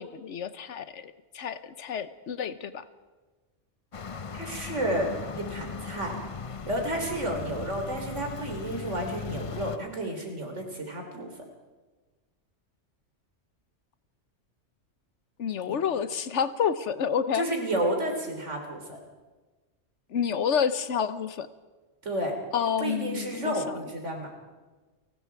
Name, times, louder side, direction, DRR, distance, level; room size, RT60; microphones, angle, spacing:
voice 1, 0.0-2.9 15.4-17.4 20.1-21.5 22.5-23.8, left 7 dB, 70° left, 13 dB, 1.3 m, -29 dB
sound 1, 3.9-9.8, left 5 dB, 35° left, 0.6 m, -38 dB
voice 2, 4.3-5.1 5.3-6.1 6.7-11.3 15.7-15.8 17.3-19.0 22.0-22.3 22.8-24.3, right 1 dB, 75° right, 3 dB, 3.7 m, -31 dB
30.0 x 19.0 x 4.7 m, 1.3 s
omnidirectional pair, 1.3 m